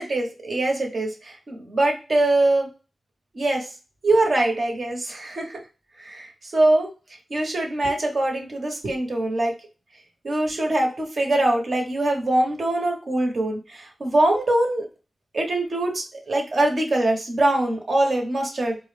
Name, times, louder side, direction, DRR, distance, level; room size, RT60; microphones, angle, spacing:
voice 1, 0.0-2.7 3.3-3.7 4.0-5.6 6.0-6.9 7.3-9.5 10.2-14.9 15.3-18.8, right 2 dB, 60° right, 1 dB, 1.1 m, -23 dB
4.3 x 2.2 x 3.3 m, 0.33 s
cardioid pair, 70°, 0 cm